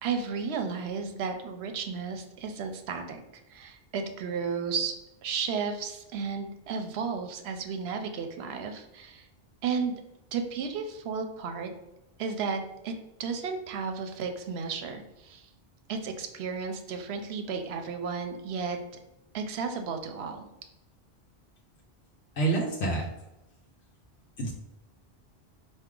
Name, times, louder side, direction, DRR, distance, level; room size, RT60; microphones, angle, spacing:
voice 1, 0.0-3.2 3.5-5.0 5.2-9.3 9.6-9.9 10.3-11.7 12.2-12.9 13.2-15.5 15.9-18.8 19.3-20.5, right 5 dB, 75° right, 6 dB, 0.9 m, -33 dB
voice 2, 22.4-23.1 24.4-24.5, right 3 dB, 80° left, -1 dB, 1.0 m, -27 dB
4.6 x 2.6 x 3.7 m, 0.93 s
omnidirectional pair, 1.1 m